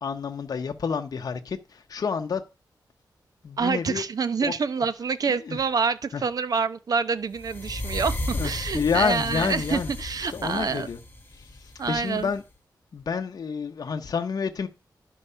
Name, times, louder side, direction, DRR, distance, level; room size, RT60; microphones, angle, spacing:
voice 1, 0.0-2.4 3.4-4.0 4.4-4.5 5.3-5.6 6.1-6.2 8.3-9.9 10.3-11.0 11.3-12.4 12.9-14.7, left 6 dB, 60° left, 0.8 m, -29 dB
voice 2, 3.6-10.9 11.8-12.3, right 5 dB, 55° right, 0.8 m, -27 dB
sound 1, 7.4-12.4, left 1 dB, 25° left, 1.7 m, -34 dB
11.5 x 4.6 x 5.6 m
wide cardioid pair, 115°, 7 cm